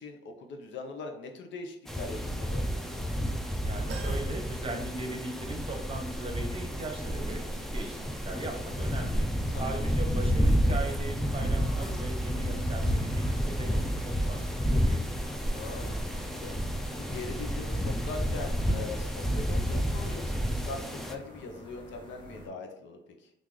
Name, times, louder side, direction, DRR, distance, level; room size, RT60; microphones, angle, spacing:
voice 1, 0.0-2.6 9.5-10.1 15.5-16.6 16.9-23.3, left 3 dB, 70° left, 4 dB, 0.7 m, -42 dB
sound 1, 1.9-21.1, equal, ahead, 0.4 m, -30 dB
voice 2, 3.6-8.0 8.2-9.3 9.6-15.0, right 2 dB, 25° right, 2 dB, 0.8 m, -39 dB
sound 2, 3.9-5.5 6.0-6.1 7.3-7.4, right 5 dB, 70° right, 0.6 m, -48 dB
sound 3, 6.0-22.5, equal, 25° left, 1.0 m, -42 dB
3.0 x 2.5 x 3.7 m, 0.82 s
cardioid pair, 90°, 20 cm